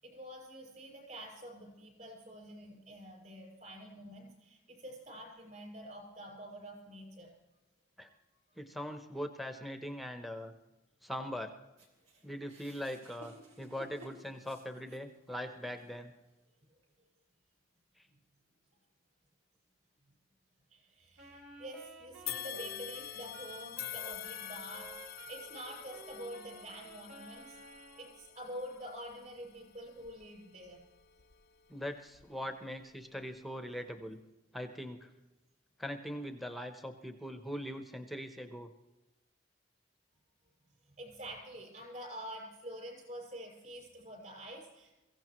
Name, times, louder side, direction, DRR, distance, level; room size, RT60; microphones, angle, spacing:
voice 1, 0.0-7.3 12.1-12.2 20.7-27.6 27.9-30.8 41.0-45.0, equal, 40° right, -2 dB, 6.4 m, -47 dB
voice 2, 8.6-10.5 11.0-11.5 12.2-16.1 31.7-34.2 34.5-35.1 35.8-38.7, equal, ahead, 7 dB, 0.8 m, -41 dB
sound 1, 11.8-15.2 15.7-15.9 16.8-16.9, right 2 dB, 85° right, 3.1 m, -56 dB
Wind instrument woodwind instrument, 21.2-28.1, right 2 dB, 60° right, 3.7 m, -52 dB
Old clock bell, 22.3-31.6 32.1-32.3 33.2-33.3, left 12 dB, 50° left, 0.5 m, -46 dB
23.0 x 15.5 x 3.1 m, 1.0 s
head